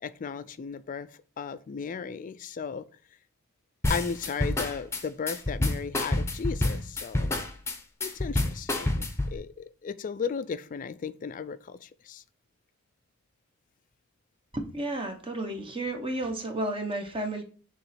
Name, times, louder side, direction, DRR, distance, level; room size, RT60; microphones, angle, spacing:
voice 1, 0.0-2.8 3.9-7.4 8.0-12.2, left 6 dB, 40° left, 14 dB, 0.3 m, -35 dB
sound 1, 3.8-9.4, left 2 dB, 10° left, 0.7 m, -28 dB
voice 2, 14.5-17.4, right 1 dB, 25° right, 5 dB, 0.8 m, -32 dB
6.7 x 3.1 x 5.7 m, 0.42 s
head